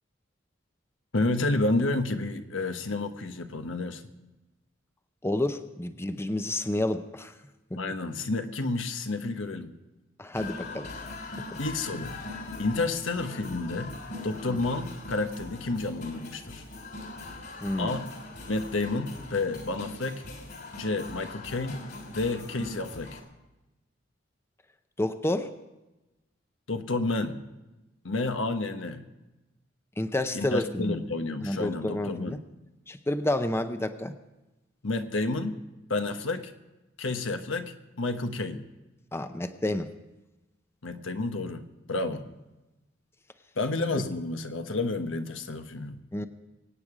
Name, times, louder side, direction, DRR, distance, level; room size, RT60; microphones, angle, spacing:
voice 1, 1.1-4.0 7.8-9.7 11.6-12.2 12.6-13.9 14.2-16.6 17.8-18.1 18.5-20.2 20.7-21.8 22.1-23.2 26.7-27.4 28.0-29.1 30.3-32.4 34.8-35.6 35.9-36.5 37.0-38.6 40.8-41.6 41.9-42.2 43.6-46.0, left 2 dB, 90° left, 7 dB, 1.2 m, -30 dB
voice 2, 5.2-7.3 7.7-7.8 10.2-10.9 14.5-14.6 17.6-18.0 25.0-25.5 30.0-31.1 31.4-32.4 32.9-34.1 39.1-39.9 46.1-46.3, left 1 dB, 15° left, 9 dB, 0.6 m, -29 dB
sound 1, 10.3-23.2, left 2 dB, 55° left, 3.2 m, -41 dB
24.0 x 8.9 x 4.9 m, 1.0 s
head